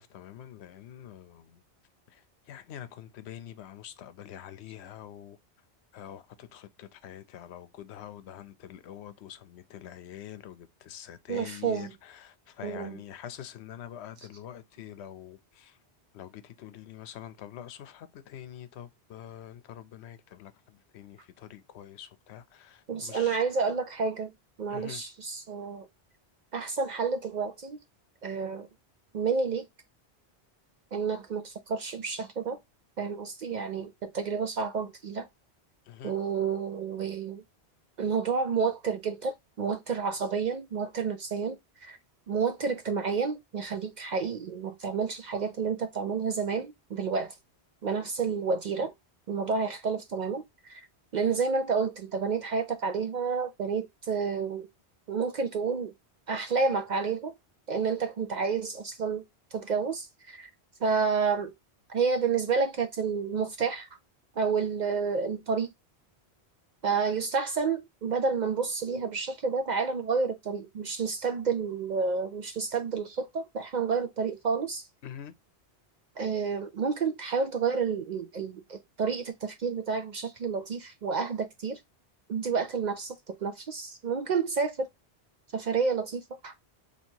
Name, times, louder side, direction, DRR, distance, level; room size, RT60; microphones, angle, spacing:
voice 1, 0.0-1.6 2.1-5.4 5.9-15.8 16.1-23.4 24.7-25.0 35.9-36.2 75.0-75.3, left 10 dB, 80° left, 0.8 m, -45 dB
voice 2, 11.3-11.9 12.6-13.0 22.9-24.3 24.6-25.8 26.5-27.8 28.2-28.7 29.1-29.7 30.9-32.6 33.0-35.3 36.0-37.4 38.0-42.0 42.3-47.3 47.8-48.9 49.3-50.9 51.1-54.7 55.1-55.9 56.3-57.3 57.7-59.2 59.5-60.5 60.8-61.5 61.9-63.9 64.4-65.7 66.8-74.9 76.2-81.8 82.3-84.9 85.5-86.5, right 5 dB, 55° right, 0.5 m, -30 dB
2.9 x 2.8 x 4.3 m
omnidirectional pair, 1.1 m